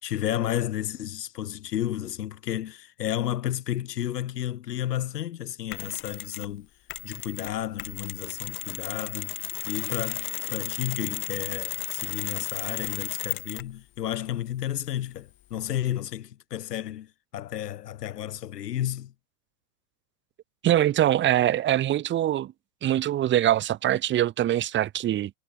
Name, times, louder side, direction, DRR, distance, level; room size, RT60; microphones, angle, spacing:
voice 1, 0.0-6.7 7.0-9.4 9.7-19.1, left 12 dB, 80° left, 4.3 m, -32 dB
Mechanisms, 5.7-6.5 6.9-13.8, left 17 dB, 25° left, 1.0 m, -34 dB
voice 2, 20.6-22.5 22.8-25.3, right 12 dB, 25° right, 1.8 m, -23 dB
supercardioid pair, 140°, 47 cm